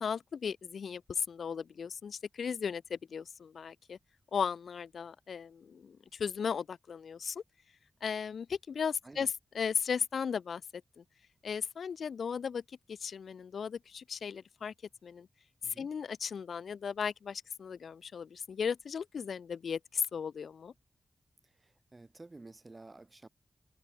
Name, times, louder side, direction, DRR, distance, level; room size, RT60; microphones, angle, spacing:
voice 1, 0.0-4.0 4.3-7.4 8.0-11.0 11.4-12.6 12.9-14.7 15.0-15.3 15.7-20.7, left 6 dB, 90° left, 0.4 m, -36 dB
voice 2, 21.4-23.3, right 2 dB, 30° right, 4.2 m, -52 dB
wide cardioid pair, 85°, 0 cm